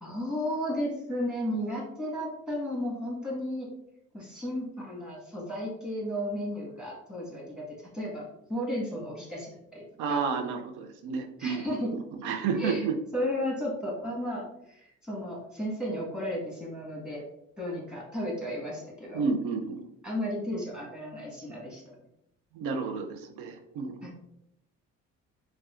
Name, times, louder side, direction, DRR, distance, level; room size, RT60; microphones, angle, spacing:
voice 1, 0.0-3.7 4.1-7.6 7.9-9.8 10.1-10.2 11.4-11.9 12.5-12.8 13.1-17.2 17.6-19.2 20.0-21.8 24.0-24.1, equal, 5° right, -3 dB, 1.5 m, -34 dB
voice 2, 10.0-13.0 19.1-19.9 22.5-24.1, right 5 dB, 90° right, 5 dB, 0.5 m, -31 dB
4.7 x 2.2 x 2.5 m, 0.78 s
cardioid pair, 105°, 30 cm